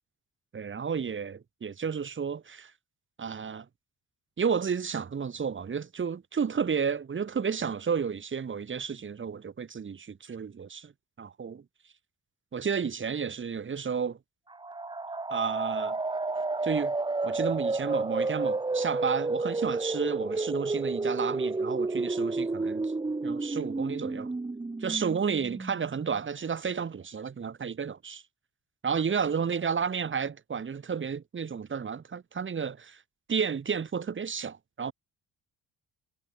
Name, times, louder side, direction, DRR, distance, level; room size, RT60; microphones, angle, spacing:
voice 1, 0.5-2.7 3.2-3.7 4.4-10.9 11.2-11.6 12.5-14.2 15.3-16.0 16.6-16.9 17.2-22.9 23.2-24.3 24.8-28.2 28.8-33.0 33.3-34.9, right 6 dB, 35° right, 1.6 m, -32 dB
sound 1, 14.5-26.2, right 3 dB, 15° right, 1.0 m, -31 dB
cardioid pair, 115°, 36 cm